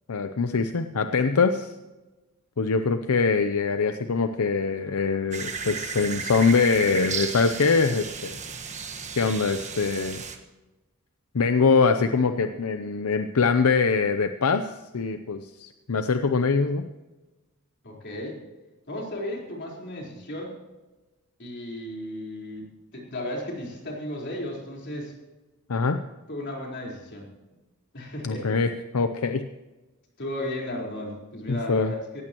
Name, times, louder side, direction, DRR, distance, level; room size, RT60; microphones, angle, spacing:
voice 1, 0.1-1.7 2.6-8.4 9.1-10.2 11.3-16.9 25.7-26.0 28.2-29.4 31.7-31.9, left 4 dB, 80° left, 8 dB, 0.6 m, -23 dB
sound 1, 5.3-10.4, right 5 dB, 30° right, 1.4 m, -34 dB
voice 2, 17.8-18.4 18.9-20.6 21.4-25.1 26.3-27.3 27.9-28.6 30.2-32.2, left 1 dB, 50° left, -2 dB, 4.3 m, -34 dB
17.5 x 15.0 x 3.0 m, 1.1 s
head